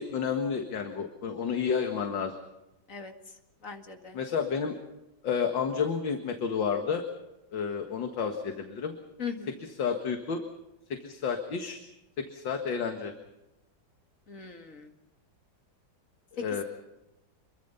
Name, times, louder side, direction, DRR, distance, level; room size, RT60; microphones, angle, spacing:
voice 1, 0.0-2.3 4.1-4.8 5.2-7.0 7.5-9.0 9.8-10.4 10.9-11.8 12.2-13.1 16.3-16.6, left 6 dB, 70° left, 5 dB, 2.4 m, -30 dB
voice 2, 3.6-4.2 9.2-9.7 14.3-14.9, left 6 dB, 40° left, 5 dB, 2.4 m, -39 dB
27.0 x 23.0 x 5.6 m, 0.95 s
omnidirectional pair, 2.1 m